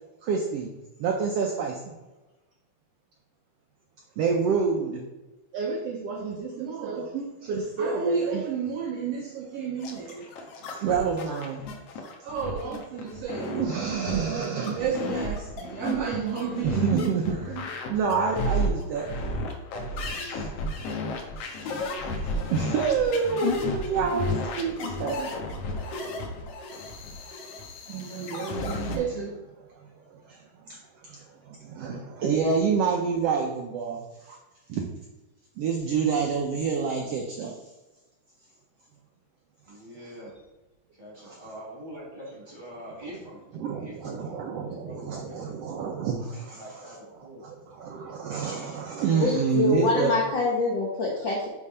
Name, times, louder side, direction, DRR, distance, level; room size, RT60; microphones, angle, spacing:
voice 1, 0.2-0.7 1.0-1.9 4.2-5.0 5.5-10.3 10.7-11.6 12.2-19.1 20.2-20.5 22.0-25.3 27.9-29.4 30.1-30.4 30.7-30.8 31.0-31.2 31.5-34.4 34.7-34.9 35.6-37.5 41.2-41.4 43.5-50.1, right 5 dB, 85° right, 1 dB, 1.4 m, -28 dB
sound 1, 9.8-29.0, left 1 dB, 65° left, 1.7 m, -32 dB
voice 2, 39.7-40.3 41.0-45.5 46.3-47.4, equal, 25° right, -5 dB, 1.1 m, -44 dB
voice 3, 49.1-51.5, left 3 dB, 85° left, -2 dB, 1.0 m, -25 dB
6.8 x 3.6 x 5.5 m, 1.1 s
omnidirectional pair, 3.6 m